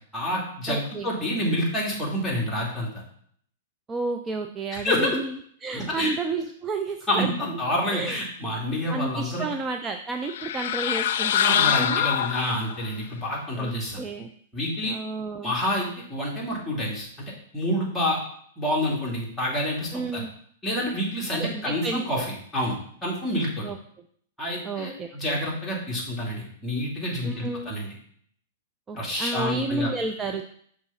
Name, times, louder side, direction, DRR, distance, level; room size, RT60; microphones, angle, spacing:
voice 1, 0.1-3.0 4.7-5.2 5.7-6.1 7.1-9.5 11.4-14.0 14.5-14.9 15.4-18.2 18.6-20.2 20.6-22.2 22.5-23.7 24.4-27.9 28.9-29.9, left 1 dB, 5° left, -5 dB, 2.6 m, -28 dB
voice 2, 0.7-1.1 3.9-5.3 5.6-7.6 7.9-8.2 8.9-12.1 13.6-14.3 14.9-15.5 19.9-20.3 21.4-22.0 23.6-23.8 24.6-25.4 27.2-27.7 28.9-30.4, right 3 dB, 20° right, 5 dB, 0.5 m, -31 dB
sound 1, 10.2-12.9, left 10 dB, 65° left, 0.4 m, -24 dB
6.0 x 3.7 x 5.6 m, 0.62 s
hypercardioid pair, 125°, 0 cm